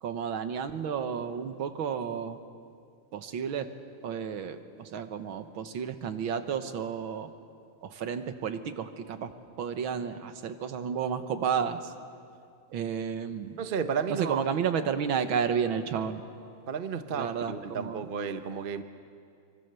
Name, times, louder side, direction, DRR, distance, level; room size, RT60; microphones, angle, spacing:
voice 1, 0.0-2.4 3.1-3.7 4.0-7.3 7.8-9.3 9.6-11.8 12.7-13.6 14.1-16.2 17.1-18.1, right 7 dB, 70° right, 9 dB, 2.0 m, -32 dB
voice 2, 13.6-14.4 16.7-18.8, right 6 dB, 40° right, 9 dB, 0.8 m, -32 dB
27.0 x 23.5 x 6.9 m, 2.3 s
omnidirectional pair, 2.3 m